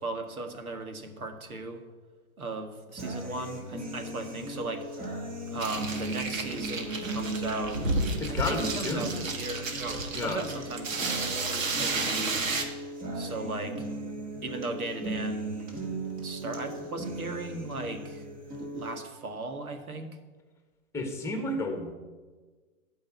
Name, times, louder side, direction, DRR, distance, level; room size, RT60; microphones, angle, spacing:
voice 1, 0.0-1.8 2.4-4.8 5.5-7.9 8.3-9.7 10.2-11.2 11.8-12.5 13.1-13.8 14.4-15.6 16.2-18.2 18.6-20.1, right 2 dB, 80° right, 6 dB, 1.8 m, -37 dB
sound 1, 3.0-19.0, right 1 dB, 20° right, 1.7 m, -37 dB
sound 2, 5.6-12.6, right 3 dB, 65° right, 1.9 m, -32 dB
voice 2, 8.2-9.3 10.1-10.5 20.9-21.9, left 2 dB, 5° left, 4 dB, 1.6 m, -31 dB
12.0 x 5.3 x 8.3 m, 1.4 s
figure-of-eight pair, 115°, 42 cm